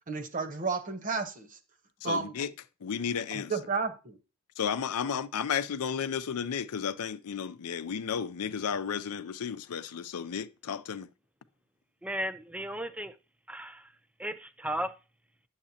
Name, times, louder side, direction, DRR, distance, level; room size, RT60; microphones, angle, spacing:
voice 1, 0.1-1.6 2.0-2.3 3.3-4.2, right 4 dB, 40° right, 1.0 m, -32 dB
voice 2, 2.0-2.5 2.8-3.5 4.6-11.1, left 7 dB, 85° left, 0.5 m, -33 dB
voice 3, 12.0-13.1 13.5-13.8 14.2-14.9, equal, 5° right, 0.5 m, -35 dB
10.0 x 7.4 x 2.8 m
head